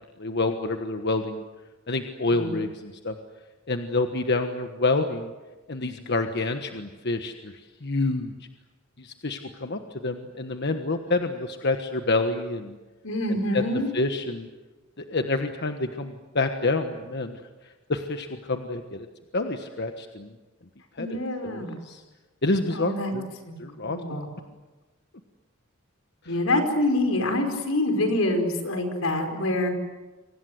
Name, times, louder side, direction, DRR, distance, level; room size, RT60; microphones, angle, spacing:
voice 1, 0.2-1.4 1.9-3.1 3.7-5.3 5.7-7.5 7.8-8.3 9.0-12.7 13.5-13.6 13.9-14.5 15.0-17.4 17.9-19.1 19.3-20.3 21.0-21.2 21.4-22.0 22.4-23.3 23.6-24.2 26.2-26.3, left 2 dB, 55° left, 6 dB, 1.4 m, -28 dB
voice 2, 13.0-13.9 21.0-21.8 22.7-23.1 23.4-24.3 26.2-29.7, left 1 dB, 80° left, 6 dB, 5.0 m, -26 dB
29.5 x 24.5 x 8.0 m, 1.2 s
head